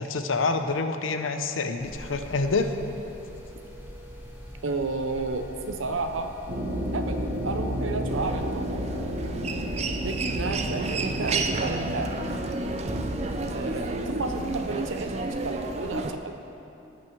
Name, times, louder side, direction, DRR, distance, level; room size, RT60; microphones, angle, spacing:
voice 1, 0.0-2.7, left 3 dB, 80° left, 7 dB, 0.7 m, -27 dB
sound 1, 1.8-16.0, equal, 10° right, 2.9 m, -43 dB
voice 2, 4.6-6.4 6.9-8.8 10.0-12.2 13.5-16.4, right 3 dB, 80° right, 6 dB, 0.7 m, -32 dB
sound 2, 6.5-14.4, equal, 50° right, 1.3 m, -32 dB
Human voice, 8.1-16.1, right 3 dB, 35° right, 0.5 m, -32 dB
17.5 x 6.2 x 4.5 m, 2.9 s
head